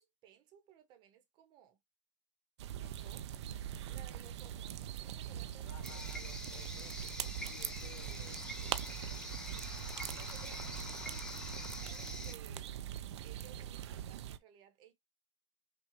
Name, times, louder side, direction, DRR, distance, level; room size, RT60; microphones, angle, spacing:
voice 1, 0.0-1.8 2.8-3.3 3.8-6.2 6.5-6.8 10.1-12.7 13.2-14.9, right 10 dB, 30° right, 0.9 m, -60 dB
sound 1, 2.6-14.4, right 10 dB, 60° right, 0.5 m, -42 dB
sound 2, 2.8-11.8, left 7 dB, 85° left, 1.1 m, -58 dB
voice 2, 5.7-9.3, left 10 dB, 35° left, 0.9 m, -58 dB
sound 3, 5.8-12.3, left 1 dB, 5° left, 0.6 m, -46 dB
5.7 x 2.3 x 3.0 m
hypercardioid pair, 155°, 16 cm